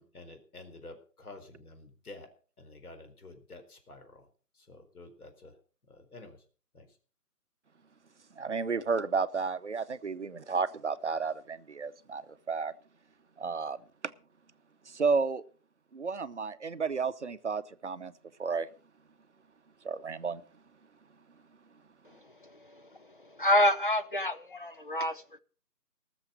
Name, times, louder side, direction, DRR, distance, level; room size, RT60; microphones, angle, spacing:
voice 1, 0.0-2.3 2.6-4.3 4.6-5.5 5.9-6.4 6.7-6.9, left 2 dB, 60° left, 4.4 m, -50 dB
voice 2, 8.4-12.7 13.4-13.8 14.9-15.4 15.9-18.1 18.4-18.7 19.8-20.4, right 5 dB, 45° right, 0.8 m, -32 dB
voice 3, 22.4-22.8 23.2-25.4, left 1 dB, 30° left, 0.7 m, -28 dB
19.0 x 7.2 x 6.4 m
figure-of-eight pair, 165°, 49 cm